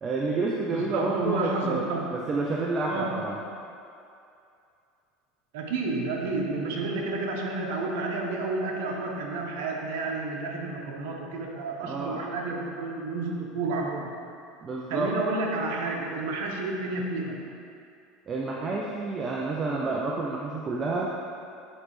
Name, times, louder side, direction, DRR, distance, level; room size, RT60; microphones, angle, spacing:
voice 1, 0.0-3.4 11.8-12.2 14.6-15.1 18.3-21.1, right 3 dB, 30° right, -3 dB, 0.5 m, -29 dB
voice 2, 0.7-2.2 2.9-3.3 5.5-14.1 14.9-17.4, right 3 dB, 80° right, 0 dB, 0.9 m, -30 dB
9.8 x 3.3 x 3.1 m, 2.5 s
supercardioid pair, 110°, 0 cm